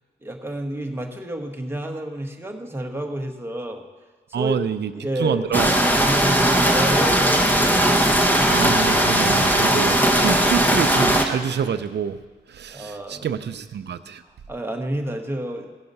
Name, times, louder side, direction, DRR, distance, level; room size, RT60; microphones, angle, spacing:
voice 1, 0.2-3.8 4.3-4.6 4.9-7.9 12.7-13.4 14.5-15.7, right 1 dB, 10° right, 2 dB, 1.2 m, -30 dB
voice 2, 4.3-4.9 5.2-5.7 8.5-12.2 12.5-14.2, right 8 dB, 65° right, 11 dB, 0.6 m, -27 dB
sound 1, 5.5-11.2, right 1 dB, 10° left, 1.1 m, -18 dB
16.5 x 5.7 x 5.4 m, 1.3 s
cardioid pair, 85°, 19 cm